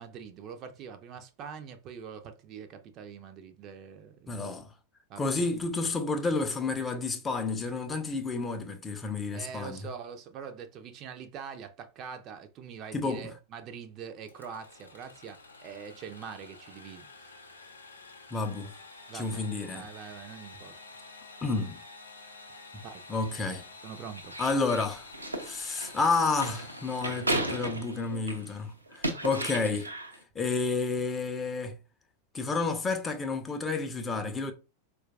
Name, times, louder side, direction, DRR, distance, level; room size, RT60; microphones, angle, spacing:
voice 1, 0.0-4.5 5.1-5.4 9.3-17.3 19.1-19.5 19.7-20.8 22.8-23.0 23.8-24.3, right 7 dB, 35° right, 0.4 m, -44 dB
voice 2, 4.3-4.7 5.2-9.8 12.9-13.3 18.3-18.7 19.1-19.9 21.4-21.8 23.1-23.6 24.4-25.1 25.4-29.9 30.4-31.8 32.3-34.5, left 3 dB, 15° left, 0.5 m, -30 dB
Engine / Sawing, 14.2-28.0, left 3 dB, 80° left, 0.6 m, -50 dB
sound 1, 24.2-28.5 28.9-30.2, right 1 dB, 80° right, 0.6 m, -34 dB
4.3 x 2.4 x 2.4 m
figure-of-eight pair, 90°, 0 cm